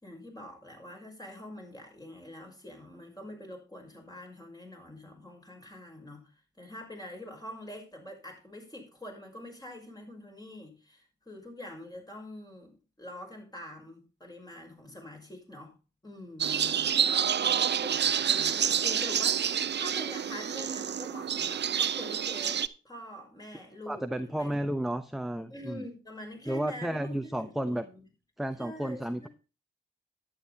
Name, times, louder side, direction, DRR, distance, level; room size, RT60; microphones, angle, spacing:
voice 1, 0.0-6.3 6.6-15.7 16.0-24.6 25.5-28.0 28.6-29.3, left 1 dB, 20° left, 6.1 m, -45 dB
sound 1, 16.4-22.7, right 8 dB, 55° right, 0.7 m, -28 dB
voice 2, 23.9-25.8 26.5-27.9 28.4-29.3, right 1 dB, ahead, 0.9 m, -32 dB
11.0 x 9.1 x 4.2 m
supercardioid pair, 55°, 21 cm